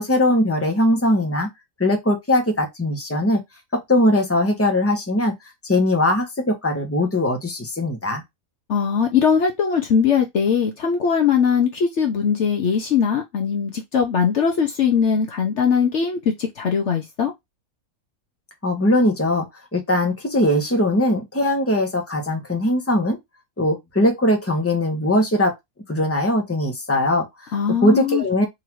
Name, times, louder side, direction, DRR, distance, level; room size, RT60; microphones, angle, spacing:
voice 1, 0.0-1.5 1.8-3.4 3.7-5.3 5.6-8.2 18.6-19.5 19.7-23.2 23.6-25.5 25.9-28.5, left 1 dB, 10° left, 1.1 m, -20 dB
voice 2, 8.7-17.3 27.5-28.2, left 7 dB, 60° left, 1.0 m, -20 dB
3.9 x 2.8 x 4.5 m
omnidirectional pair, 1.5 m